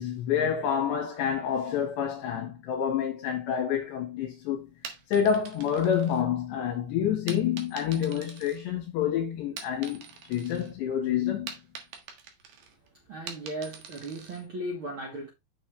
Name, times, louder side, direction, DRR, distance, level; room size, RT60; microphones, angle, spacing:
voice 1, 0.0-4.7 5.1-10.0 10.3-11.5, left 8 dB, 80° left, 3.8 m, -28 dB
sound 1, 4.7-6.6 7.3-9.1 9.4-10.7 11.0-14.5, right 6 dB, 60° right, 2.6 m, -44 dB
voice 2, 13.1-15.3, right 1 dB, 90° right, 1.1 m, -36 dB
7.2 x 6.9 x 3.3 m
omnidirectional pair, 4.9 m